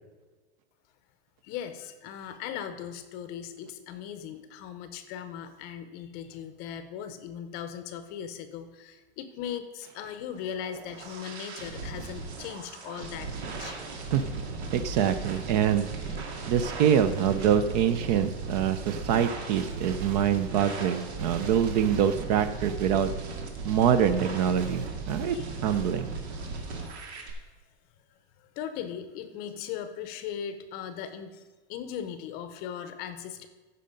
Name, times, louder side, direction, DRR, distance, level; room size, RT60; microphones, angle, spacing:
voice 1, 1.4-13.9 25.3-25.5 26.4-27.1 28.1-31.4 31.7-33.5, left 9 dB, 30° left, 10 dB, 0.7 m, -39 dB
sound 1, 10.3-27.3, right 3 dB, 85° right, 2.1 m, -37 dB
voice 2, 14.7-15.9 16.5-23.1 23.6-25.4 25.6-26.1, right 9 dB, 40° right, 11 dB, 0.5 m, -25 dB
14.5 x 5.6 x 5.2 m, 1.3 s
supercardioid pair, 165°, 32 cm